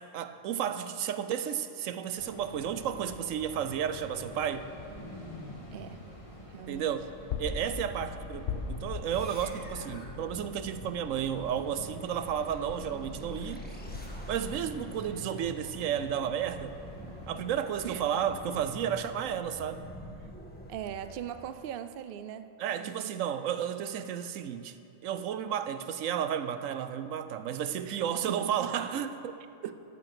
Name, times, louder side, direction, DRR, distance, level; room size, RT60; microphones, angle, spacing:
voice 1, 0.1-4.6 6.7-7.1 7.4-13.7 14.3-16.8 17.3-19.8 22.6-24.8 25.0-29.8, right 9 dB, 80° right, 11 dB, 1.0 m, -32 dB
sound 1, 2.2-19.2, left 1 dB, 25° left, 1.8 m, -48 dB
sound 2, 4.6-14.4, left 5 dB, 65° left, 1.1 m, -42 dB
voice 2, 6.5-6.9 17.8-18.0 20.7-23.1 27.9-28.7, right 10 dB, 60° right, 11 dB, 0.6 m, -40 dB
sound 3, 9.1-21.7, equal, 5° left, 1.4 m, -46 dB
12.5 x 9.0 x 6.0 m, 2.8 s
omnidirectional pair, 1.4 m